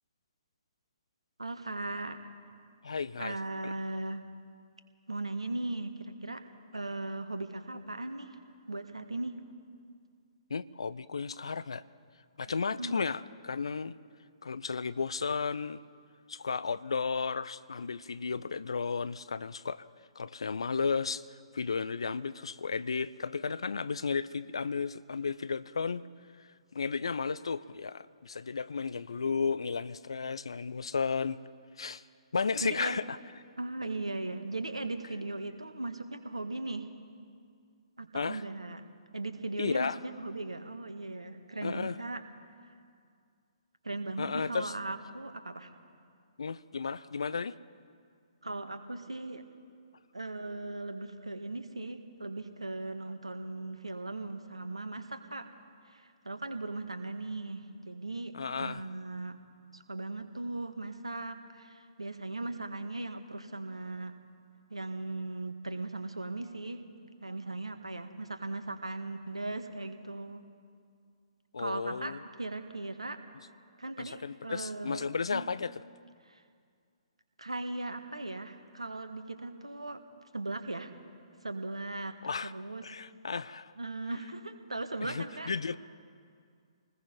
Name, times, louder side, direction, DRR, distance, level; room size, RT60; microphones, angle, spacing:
voice 1, 1.4-2.2 3.2-4.2 5.1-6.4 6.7-8.4 8.7-9.4 12.5-13.1 32.6-33.0 33.6-36.9 38.0-38.9 39.1-42.2 43.8-45.7 48.4-49.4 50.1-55.5 55.9-59.4 59.7-64.1 64.7-66.8 67.2-70.4 71.6-73.2 73.8-75.4 76.3-76.4 77.4-80.0 80.3-80.9 81.4-82.1 82.4-82.9 83.8-85.5, right 2 dB, 75° right, 8 dB, 1.7 m, -38 dB
voice 2, 2.8-3.4 3.6-3.7 10.5-11.8 12.4-14.0 14.4-15.8 16.3-19.9 20.2-21.3 21.5-26.0 26.7-31.4 31.8-32.0 32.3-33.2 38.1-38.4 39.6-40.0 41.6-42.0 44.2-44.7 46.4-47.6 58.3-58.8 71.5-72.2 74.0-75.7 82.2-82.5 82.8-83.7 85.0-85.8, left 5 dB, 60° left, 16 dB, 0.6 m, -33 dB
26.5 x 20.0 x 5.3 m, 2.2 s
figure-of-eight pair, 125°, 3 cm